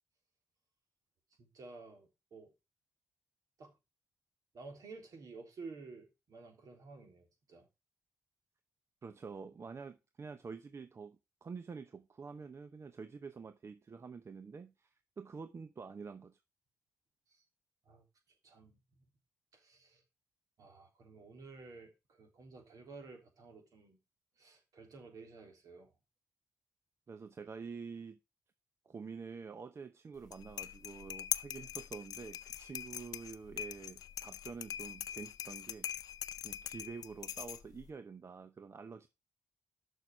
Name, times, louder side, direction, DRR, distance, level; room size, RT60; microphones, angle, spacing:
voice 1, 1.4-2.5 3.6-3.7 4.5-7.7 17.3-17.4 17.8-18.0 18.4-18.8 19.5-20.0 20.6-24.0 24.4-25.9, right 4 dB, 65° right, 3.4 m, -52 dB
voice 2, 9.0-16.4 27.1-28.2 28.8-36.1 36.4-39.1, right 5 dB, 45° right, 0.8 m, -48 dB
sound 1, 30.2-37.9, left 10 dB, 80° left, 0.5 m, -42 dB
6.6 x 6.5 x 5.9 m
cardioid pair, 65°, 6 cm